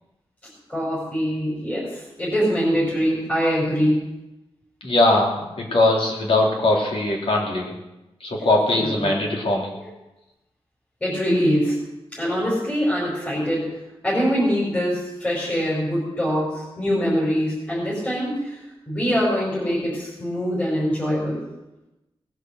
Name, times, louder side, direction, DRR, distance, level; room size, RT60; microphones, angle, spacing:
voice 1, 0.7-4.1 8.7-9.1 9.7-9.9 11.0-11.9 12.1-13.8 14.0-18.6 18.9-21.5, equal, 15° left, -6 dB, 5.3 m, -23 dB
voice 2, 4.8-7.7 8.2-9.7, left 2 dB, 65° left, -2 dB, 3.6 m, -20 dB
18.5 x 8.1 x 8.0 m, 0.97 s
wide cardioid pair, 170°, 10 cm